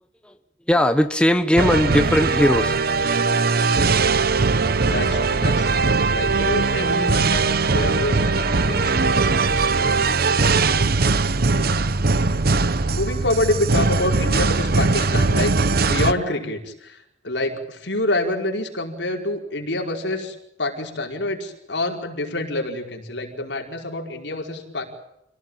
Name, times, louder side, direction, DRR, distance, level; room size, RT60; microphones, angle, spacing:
voice 1, 0.7-2.8, left 1 dB, 5° left, 8 dB, 1.1 m, -18 dB
sound 1, 1.6-16.1, right 3 dB, 60° right, 1.0 m, -20 dB
voice 2, 4.8-9.0 12.9-17.0 17.2-24.8, left 1 dB, 80° left, 2 dB, 5.0 m, -27 dB
27.5 x 18.0 x 9.1 m, 0.84 s
head